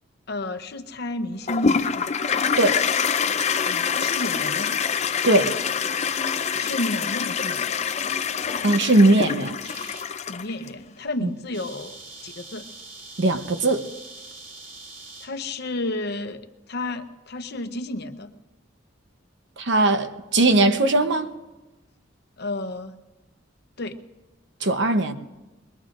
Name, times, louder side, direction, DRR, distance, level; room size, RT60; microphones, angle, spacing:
voice 1, 0.3-2.1 3.7-4.8 6.5-7.8 10.3-12.6 15.2-18.3 22.4-23.0 23.8-24.0, left 2 dB, 55° left, 0.8 m, -32 dB
Toilet flush, 1.5-10.7, left 6 dB, 35° left, 0.5 m, -25 dB
voice 2, 8.6-9.6 11.2-11.3 13.2-13.8 19.6-21.3 24.6-25.1, right 2 dB, 65° right, 1.0 m, -19 dB
sound 1, 9.6-10.1 10.6-10.8 11.1-11.2 11.4-15.3, right 3 dB, 85° right, 2.3 m, -43 dB
22.5 x 21.5 x 2.6 m
head